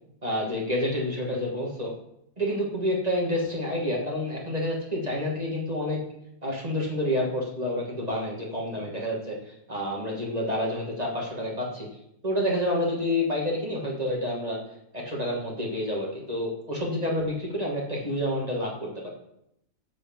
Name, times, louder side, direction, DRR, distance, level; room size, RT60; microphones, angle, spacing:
voice 1, 0.2-1.9 2.4-6.0 6.4-11.9 12.2-14.6 14.9-19.1, left 1 dB, 25° right, -2 dB, 2.4 m, -29 dB
9.6 x 5.1 x 7.9 m, 0.78 s
omnidirectional pair, 1.5 m